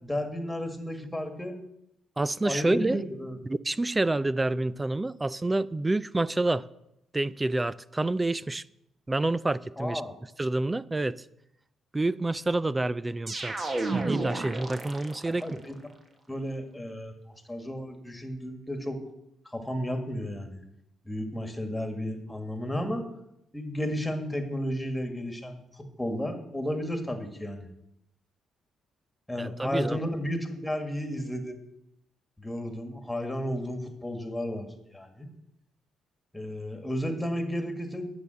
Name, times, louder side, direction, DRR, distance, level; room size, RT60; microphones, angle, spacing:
voice 1, 0.0-1.5 2.4-3.4 9.8-10.1 15.3-15.7 16.3-17.1 17.5-19.0 19.5-20.6 21.1-23.0 23.5-27.7 29.3-31.6 32.4-35.3 36.3-38.1, equal, 5° left, 1.9 m, -33 dB
voice 2, 2.2-3.0 3.5-6.6 7.1-8.6 9.1-10.0 10.4-11.2 11.9-13.6 13.9-15.6 29.4-30.0, right 2 dB, 20° right, 0.4 m, -28 dB
sound 1, 13.3-15.5, right 3 dB, 35° right, 1.4 m, -32 dB
9.7 x 6.8 x 7.7 m
cardioid pair, 90°, 0 cm